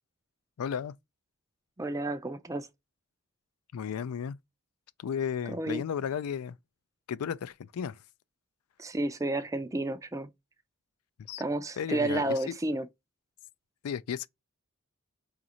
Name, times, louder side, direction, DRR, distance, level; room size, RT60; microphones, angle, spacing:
voice 1, 0.6-0.9 3.7-4.4 5.0-6.6 7.1-8.0 11.3-11.4 11.8-12.4 13.8-14.3, left 7 dB, 75° left, 0.4 m, -34 dB
voice 2, 1.8-2.7 5.5-5.8 8.8-10.3 11.4-12.9, right 2 dB, 15° right, 0.4 m, -31 dB
5.0 x 2.5 x 2.8 m
head